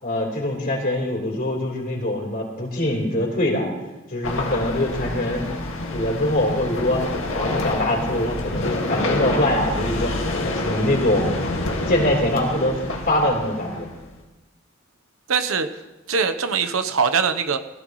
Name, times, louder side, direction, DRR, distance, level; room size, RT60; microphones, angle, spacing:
voice 1, 0.0-3.7 4.1-5.5 5.9-7.0 7.4-10.1 10.5-11.3 11.9-12.8 13.1-13.9, left 1 dB, 45° left, -1 dB, 4.0 m, -23 dB
sound 1, 4.2-14.2, left 2 dB, 70° left, 2.1 m, -27 dB
voice 2, 15.3-15.7 16.1-17.6, right 5 dB, 90° right, 8 dB, 1.1 m, -22 dB
19.5 x 15.5 x 3.2 m, 1.1 s
head